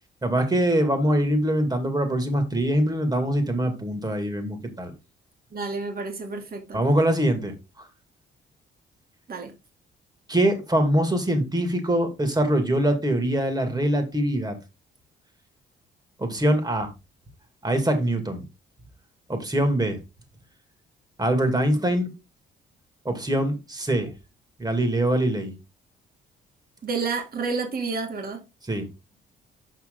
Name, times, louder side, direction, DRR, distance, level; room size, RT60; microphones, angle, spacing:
voice 1, 0.2-4.9 6.7-7.5 10.3-14.6 16.2-16.9 17.6-18.4 19.3-20.0 21.2-22.1 23.0-24.1 24.6-25.5 28.7-28.9, right 1 dB, 20° right, 2.3 m, -23 dB
voice 2, 5.5-6.8 9.3-9.5 26.8-28.4, right 4 dB, 50° right, 2.4 m, -30 dB
7.4 x 5.6 x 3.8 m
cardioid pair, 90°, 20 cm